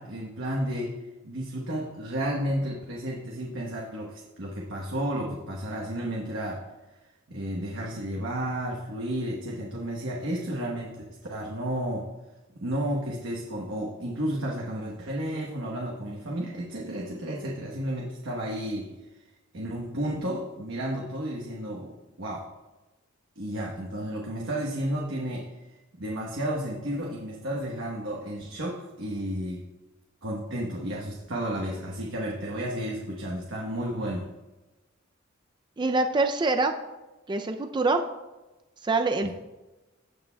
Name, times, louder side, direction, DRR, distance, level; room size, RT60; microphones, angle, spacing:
voice 1, 0.0-6.7 7.3-11.0 11.3-12.1 12.6-19.0 19.5-22.5 23.4-25.5 26.0-29.6 30.2-34.3 39.2-39.3, right 1 dB, 65° right, -2 dB, 1.1 m, -32 dB
voice 2, 35.8-36.8 37.3-38.0 38.8-39.3, right 3 dB, 20° right, 6 dB, 0.4 m, -25 dB
17.0 x 6.6 x 2.3 m, 1.1 s
head